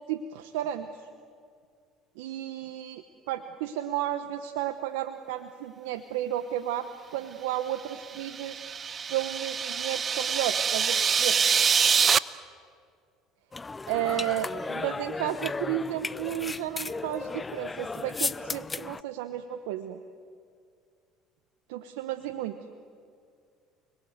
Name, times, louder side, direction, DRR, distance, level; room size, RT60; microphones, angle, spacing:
voice 1, 0.1-1.1 2.2-8.6 9.1-11.4 13.9-20.0 21.7-22.6, right 12 dB, 85° right, 9 dB, 1.0 m, -33 dB
sound 1, 8.0-12.2, right 6 dB, 35° right, 0.8 m, -25 dB
sound 2, 13.5-19.0, left 3 dB, 20° left, 0.5 m, -35 dB
29.5 x 21.0 x 8.0 m, 2.2 s
supercardioid pair, 80°, 0 cm